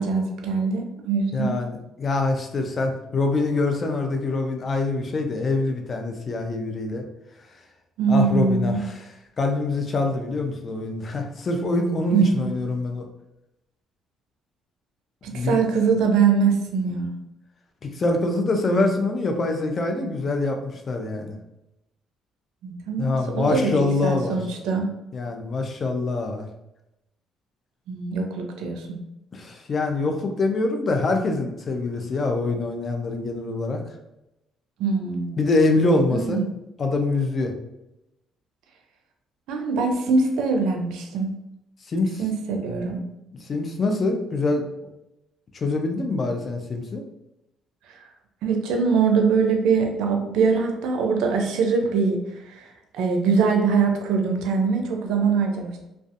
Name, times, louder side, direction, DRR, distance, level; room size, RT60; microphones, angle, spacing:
voice 1, 0.0-1.6 8.0-8.8 12.1-12.7 15.2-17.1 22.6-23.7 24.0-24.9 27.9-29.0 34.8-35.4 36.1-36.4 39.5-41.3 42.2-43.0 48.4-52.2 52.4-52.7 52.9-55.9, right 5 dB, 75° right, 3 dB, 0.4 m, -23 dB
voice 2, 1.3-7.0 8.1-9.1 9.4-13.1 15.3-15.6 17.8-21.4 23.0-24.4 25.1-26.5 29.3-33.8 35.4-36.4 36.8-37.5 41.9-42.2 43.3-44.7 45.5-47.0, left 2 dB, 45° left, 4 dB, 0.5 m, -24 dB
2.5 x 2.3 x 2.4 m, 0.89 s
supercardioid pair, 65°, 0 cm